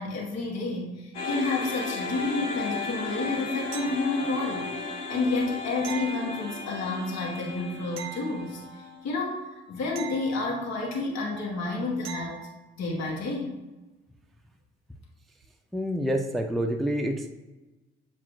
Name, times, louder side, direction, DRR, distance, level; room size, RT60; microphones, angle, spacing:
voice 1, 0.0-4.7 5.1-8.6 9.0-12.5 12.8-13.6, left 3 dB, 50° left, -2 dB, 1.1 m, -30 dB
sound 1, 1.1-9.4, left 3 dB, 85° left, 1.0 m, -35 dB
sound 2, 3.7-4.5 5.8-6.9 8.0-9.0 9.9-11.0 12.0-12.7 15.4-15.5, right 11 dB, 50° right, 0.6 m, -42 dB
voice 2, 15.7-17.3, equal, ahead, 3 dB, 0.5 m, -27 dB
7.1 x 2.5 x 2.5 m, 1.1 s
hypercardioid pair, 45°, 33 cm